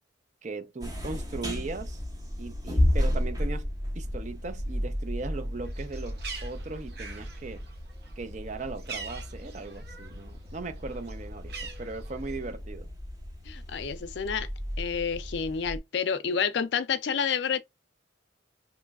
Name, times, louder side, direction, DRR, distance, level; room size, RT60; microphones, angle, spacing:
voice 1, 0.4-2.0 2.4-7.7 8.2-12.9, right 3 dB, 40° right, 0.5 m, -38 dB
sound 1, 0.8-15.8, left 1 dB, 20° right, 1.0 m, -33 dB
Bird, 5.6-10.3 10.6-12.5, right 5 dB, 55° right, 0.9 m, -44 dB
voice 2, 13.4-14.5 14.8-17.6, left 6 dB, 70° left, 0.4 m, -29 dB
3.0 x 2.3 x 3.4 m
head